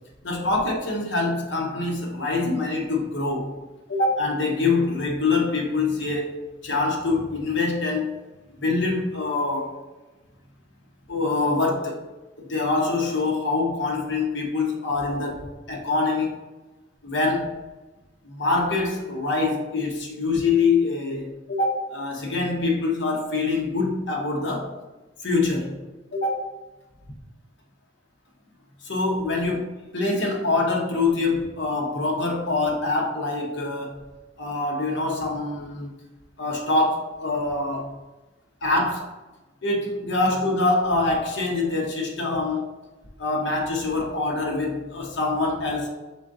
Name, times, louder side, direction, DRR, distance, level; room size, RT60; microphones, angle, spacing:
voice 1, 0.2-3.5 3.9-6.4 6.6-8.1 8.5-9.7 11.1-12.1 12.4-16.4 17.0-17.5 18.2-24.7 25.2-25.8 26.1-26.5 28.8-29.6 29.9-34.0 34.4-35.9 36.4-38.0 38.6-39.1 39.6-42.7 43.2-45.9, left 3 dB, 65° left, -1 dB, 1.0 m, -25 dB
5.0 x 3.7 x 2.7 m, 1.1 s
head